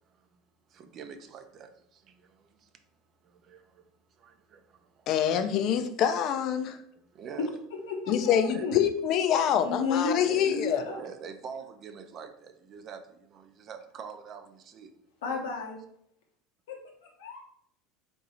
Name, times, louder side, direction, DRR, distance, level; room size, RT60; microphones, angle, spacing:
voice 1, 0.7-2.7 3.2-3.9 4.2-5.2 7.1-7.5 8.5-8.7 10.2-10.6 10.9-14.9, right 6 dB, 45° right, 8 dB, 0.5 m, -45 dB
voice 2, 5.1-6.8 8.1-10.8, left 9 dB, 55° left, 8 dB, 0.5 m, -26 dB
voice 3, 7.9-8.8 9.6-10.2 10.4-11.0 15.2-15.8 16.7-16.8 17.0-17.4, left 5 dB, 90° left, 0 dB, 0.9 m, -32 dB
3.7 x 2.6 x 4.2 m, 0.70 s
supercardioid pair, 110°, 0 cm